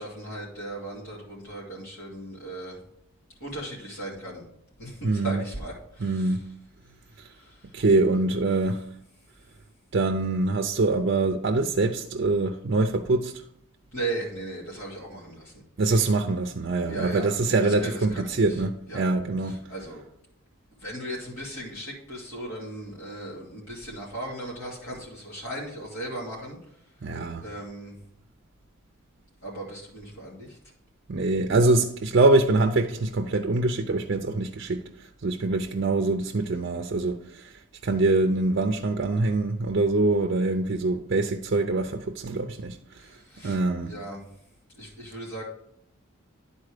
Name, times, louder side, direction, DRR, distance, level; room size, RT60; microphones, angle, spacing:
voice 1, 0.0-2.8 3.4-4.4 4.8-6.4 7.1-7.7 13.9-15.6 15.9-16.1 16.8-18.6 18.9-19.0 19.4-20.0 20.8-26.6 27.4-28.0 29.4-30.6 43.0-44.3 44.7-45.4, right 1 dB, 75° left, 2.7 m, -37 dB
voice 2, 5.0-5.4 6.0-6.5 7.7-8.8 9.9-13.3 15.8-19.6 27.0-27.4 31.1-34.8 35.2-37.5 37.8-42.8 43.4-43.9, right 2 dB, 50° right, 0.5 m, -24 dB
10.5 x 4.2 x 4.9 m
head